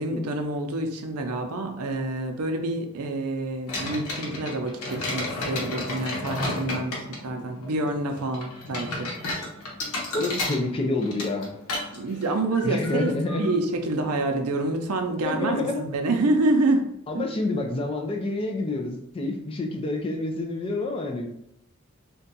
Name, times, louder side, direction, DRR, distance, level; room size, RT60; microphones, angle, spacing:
voice 1, 0.0-9.1 12.0-13.1 13.4-16.9 17.1-17.2, right 2 dB, 85° right, 5 dB, 0.5 m, -27 dB
sound 1, 3.7-14.6, left 2 dB, 80° left, 0.9 m, -34 dB
voice 2, 10.1-11.5 12.6-13.5 15.0-15.8 17.1-21.3, left 2 dB, 25° left, 2 dB, 0.4 m, -28 dB
2.6 x 2.3 x 3.9 m, 0.77 s
head